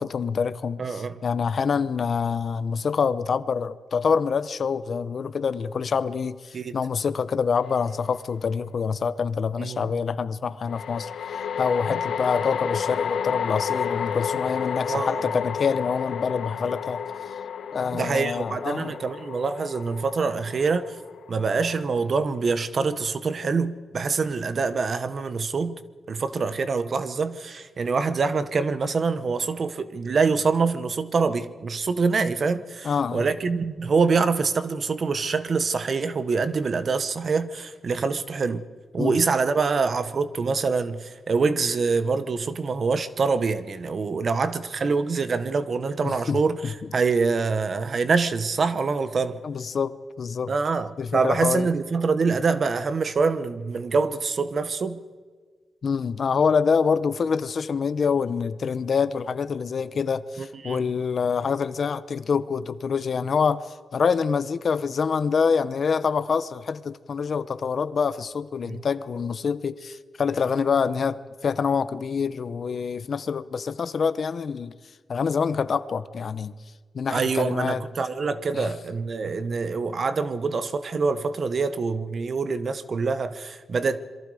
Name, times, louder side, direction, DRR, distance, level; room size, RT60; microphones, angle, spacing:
voice 1, 0.0-11.1 11.6-17.0 17.7-18.9 32.8-33.3 39.0-39.2 46.0-46.4 49.4-50.5 51.0-51.7 55.8-74.7 75.1-76.5 76.9-77.8 78.5-78.7, left 6 dB, 45° left, 0.7 m, -26 dB
voice 2, 0.8-1.2 6.5-6.7 9.6-9.9 11.9-12.0 14.9-15.3 17.9-21.0 21.3-25.8 26.1-38.6 38.9-49.4 50.5-55.0 60.4-60.8 68.6-68.8 77.1-84.0, right 4 dB, 40° right, 1.1 m, -25 dB
sound 1, 7.7-7.8 10.7-22.0, left 7 dB, 75° left, 1.0 m, -31 dB
27.0 x 23.0 x 4.9 m
wide cardioid pair, 175°, 0 cm